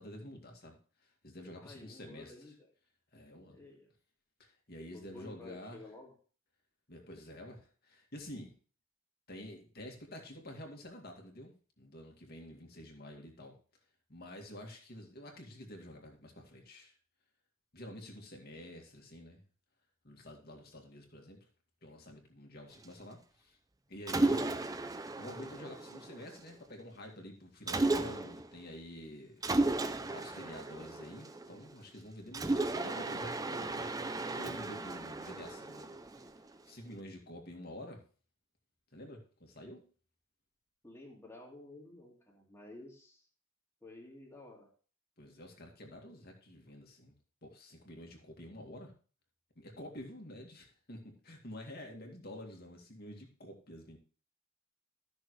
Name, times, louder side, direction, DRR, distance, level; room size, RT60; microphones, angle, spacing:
voice 1, 0.0-2.5 3.1-3.6 4.4-5.8 6.9-8.6 9.3-13.6 14.1-16.9 17.7-19.4 20.0-21.5 21.8-23.6 23.9-24.6 25.2-29.4 30.0-34.0 34.3-36.2 36.7-38.0 38.9-39.8 45.2-47.2 47.4-48.9 49.6-54.0, left 1 dB, 50° left, 1 dB, 2.2 m, -49 dB
voice 2, 1.5-2.7 3.3-3.9 4.9-6.2 40.8-43.2 43.8-44.7, left 2 dB, 15° left, -1 dB, 2.4 m, -52 dB
Mechanisms, 24.1-26.5 27.7-28.5 29.4-31.7 32.3-36.5, right 2 dB, 15° right, 0.5 m, -34 dB
13.5 x 6.4 x 3.2 m, 0.39 s
head